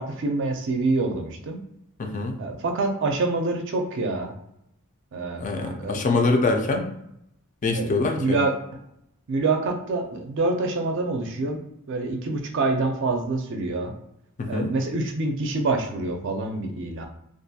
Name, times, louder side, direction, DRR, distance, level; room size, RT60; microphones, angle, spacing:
voice 1, 0.0-1.6 2.4-4.3 5.1-6.0 7.7-8.5 9.3-11.6 11.9-13.9 14.5-17.1, right 3 dB, 55° right, 4 dB, 0.4 m, -26 dB
voice 2, 2.0-2.4 5.4-6.9 7.6-8.4 14.4-14.7, left 3 dB, 35° left, 4 dB, 0.3 m, -24 dB
2.4 x 2.2 x 2.7 m, 0.79 s
head